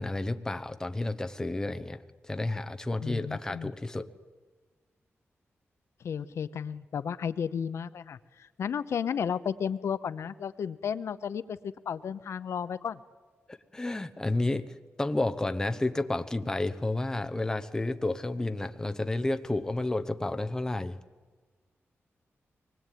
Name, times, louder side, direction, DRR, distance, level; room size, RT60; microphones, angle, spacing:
voice 1, 0.0-4.1 13.5-21.0, left 2 dB, 15° left, 9 dB, 0.9 m, -31 dB
voice 2, 3.0-3.7 6.0-13.0, left 7 dB, 75° left, 15 dB, 0.7 m, -33 dB
24.0 x 20.0 x 9.2 m, 1.4 s
wide cardioid pair, 165°, 5 cm